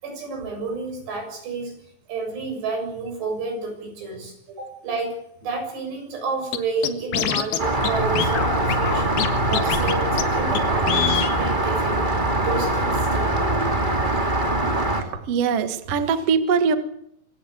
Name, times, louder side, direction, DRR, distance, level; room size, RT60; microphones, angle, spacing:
voice 1, 0.0-1.7 2.1-13.4, right 4 dB, 90° right, 4 dB, 9.2 m, -30 dB
Scratching (performance technique), 6.5-6.6 6.8-7.6 7.8-7.9 8.2-9.3 9.5-9.9 10.2-10.3 10.5-10.6 10.9-11.3, left 10 dB, 70° left, 3.4 m, -24 dB
Rain, 7.6-15.0, right 2 dB, 15° right, 2.1 m, -22 dB
voice 2, 15.0-16.8, right 6 dB, 50° right, 9 dB, 2.0 m, -22 dB
25.0 x 17.0 x 8.3 m, 0.73 s
omnidirectional pair, 4.7 m